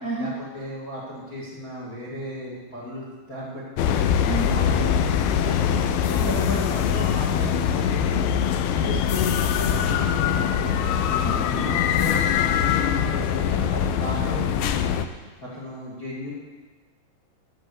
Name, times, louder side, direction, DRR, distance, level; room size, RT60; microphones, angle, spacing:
voice 1, 0.2-4.0 4.5-10.7 11.6-14.7 15.4-16.3, left 1 dB, 35° left, -4 dB, 1.5 m, -34 dB
sound 1, 3.8-15.0, left 8 dB, 85° left, 2.2 m, -23 dB
voice 2, 11.2-11.7, right 2 dB, 40° right, -5 dB, 1.5 m, -30 dB
13.5 x 6.1 x 8.0 m, 1.3 s
omnidirectional pair, 5.1 m